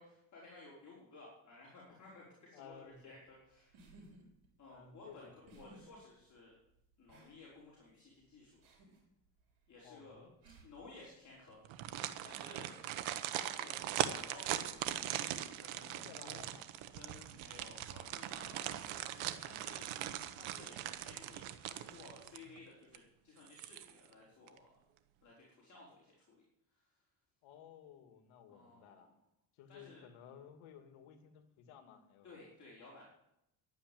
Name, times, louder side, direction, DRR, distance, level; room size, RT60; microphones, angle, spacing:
voice 1, 0.0-3.8 4.6-6.5 7.0-8.5 9.7-10.2 10.6-11.6 12.2-12.8 13.3-13.8 14.1-15.1 15.6-16.4 16.9-24.7 25.2-26.4 26.7-26.8 28.5-29.1 29.7-30.1 32.2-33.0, left 2 dB, 35° left, -5 dB, 4.8 m, -56 dB
voice 2, 2.5-3.1 4.7-5.3 9.8-10.4 15.9-16.7 27.4-29.1 29.5-32.3, left 8 dB, 90° left, 7 dB, 2.3 m, -56 dB
sound 1, 2.9-22.4, right 2 dB, 70° right, 6.0 m, -66 dB
sound 2, 11.6-22.6 22.9-23.0 23.5-24.1 24.5-24.6, right 12 dB, 85° right, 1.2 m, -40 dB
12.0 x 9.0 x 9.3 m, 0.82 s
cardioid pair, 125°, 47 cm